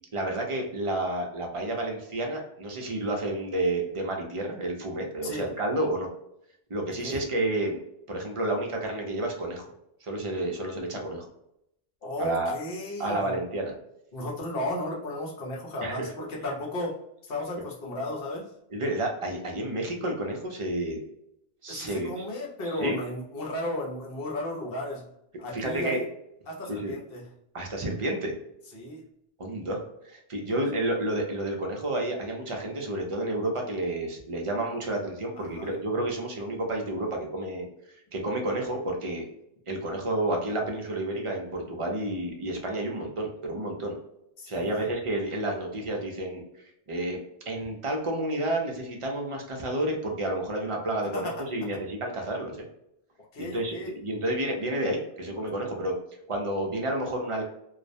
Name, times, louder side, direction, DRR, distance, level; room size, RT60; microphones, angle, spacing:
voice 1, 0.1-6.1 6.7-7.8 8.1-9.6 10.0-11.3 12.2-12.5 13.0-13.7 15.8-16.1 18.7-21.0 21.6-22.2 22.6-23.0 25.5-26.0 26.7-26.9 27.5-28.3 29.4-29.8 30.0-37.7 38.1-39.3 39.7-43.9 44.5-46.4 46.9-47.2 47.5-52.6 53.4-55.9 56.3-57.4, right 1 dB, 45° right, 1 dB, 0.4 m, -30 dB
voice 2, 12.0-13.3 14.1-17.0 17.3-18.5 21.7-25.0 25.4-26.1 26.5-27.2 28.7-29.0 35.4-35.7 44.4-44.9 51.1-51.3 53.3-53.9, left 1 dB, 70° left, -1 dB, 0.9 m, -34 dB
2.3 x 2.0 x 2.6 m, 0.78 s
omnidirectional pair, 1.0 m